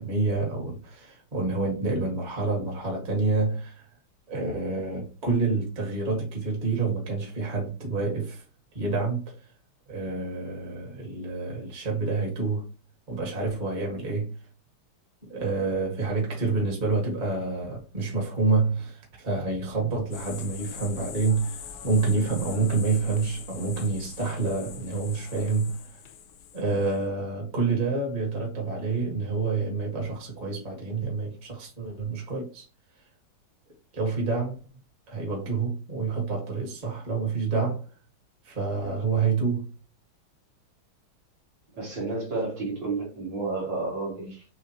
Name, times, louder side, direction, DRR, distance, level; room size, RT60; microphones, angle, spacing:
voice 1, 0.0-3.9 4.3-8.4 8.7-9.4 9.9-12.6 13.1-14.3 15.2-26.0 26.5-32.7 33.9-34.6 35.1-37.8 38.4-39.7, right 4 dB, 20° right, 1.6 m, -28 dB
sound 1, 20.1-27.0, left 8 dB, 70° left, 0.9 m, -43 dB
voice 2, 41.8-44.5, right 3 dB, 55° right, 2.7 m, -31 dB
7.0 x 2.6 x 2.9 m
omnidirectional pair, 2.4 m